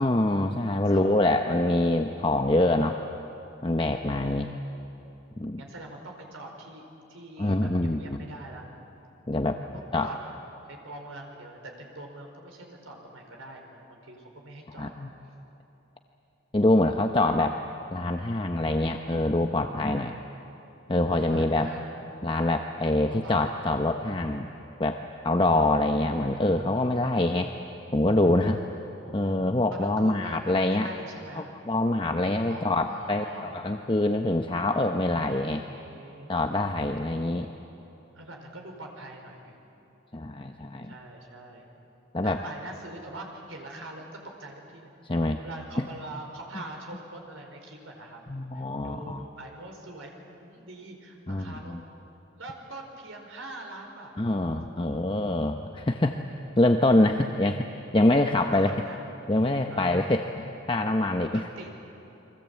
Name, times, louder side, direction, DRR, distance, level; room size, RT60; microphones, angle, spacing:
voice 1, 0.0-3.0 3.6-4.5 5.4-5.6 7.4-8.2 9.3-9.6 9.9-10.1 14.8-15.1 16.5-17.6 17.9-20.1 20.9-21.7 22.2-24.5 24.8-27.5 27.9-28.6 29.1-30.9 31.4-35.6 36.3-37.5 40.1-40.9 42.1-42.4 45.0-45.4 45.8-45.9 48.3-49.2 51.3-51.8 54.2-56.2 56.6-57.7 57.9-58.8 59.3-61.4, left 1 dB, 25° left, 5 dB, 0.8 m, -25 dB
voice 2, 0.9-1.4 5.6-6.8 7.1-8.7 9.7-10.3 10.6-15.0 21.3-21.9 23.0-23.6 29.0-31.5 32.5-33.7 35.7-36.5 38.1-39.7 40.8-41.7 42.2-44.0 44.4-44.9 45.4-48.2 48.5-51.7 52.3-54.1 54.8-55.3 58.3-59.1 59.7-60.4 61.2-61.7, right 2 dB, 90° right, 2 dB, 4.7 m, -44 dB
30.0 x 23.0 x 8.4 m, 2.9 s
head